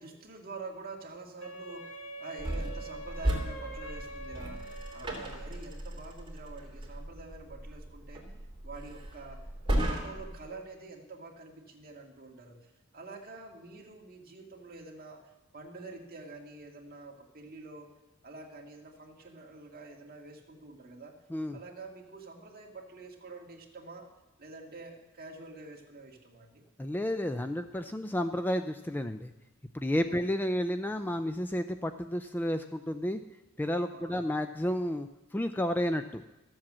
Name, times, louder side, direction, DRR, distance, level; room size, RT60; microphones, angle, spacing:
voice 1, 0.0-2.0 2.2-8.2 8.6-9.4 9.7-15.2 15.5-17.9 18.2-21.2 21.5-24.1 24.4-26.6 30.1-30.3 33.9-34.3, right 3 dB, 45° right, 0 dB, 2.0 m, -47 dB
Wind instrument woodwind instrument, 1.4-5.5, right 2 dB, 80° left, 1.6 m, -44 dB
sound 1, 2.4-10.4, right 1 dB, 25° right, 2.7 m, -36 dB
voice 2, 26.8-29.3 29.7-33.2 33.6-36.2, equal, 10° left, 8 dB, 0.3 m, -31 dB
13.5 x 7.6 x 7.4 m, 1.0 s
head